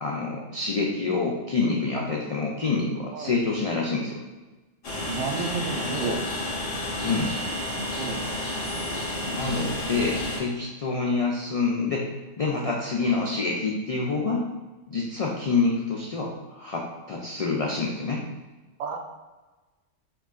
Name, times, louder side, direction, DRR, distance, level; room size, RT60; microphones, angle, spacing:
voice 1, 0.0-4.2 7.0-7.4 9.3-12.1 12.4-14.5 14.9-18.2, left 4 dB, 75° left, -1 dB, 0.3 m, -27 dB
Train, 4.8-10.4, left 1 dB, 55° left, 1.2 m, -31 dB
voice 2, 5.1-6.2 8.0-8.2 18.8-19.0, right 5 dB, 75° right, 3 dB, 0.9 m, -31 dB
4.6 x 3.7 x 2.4 m, 1.2 s
omnidirectional pair, 1.2 m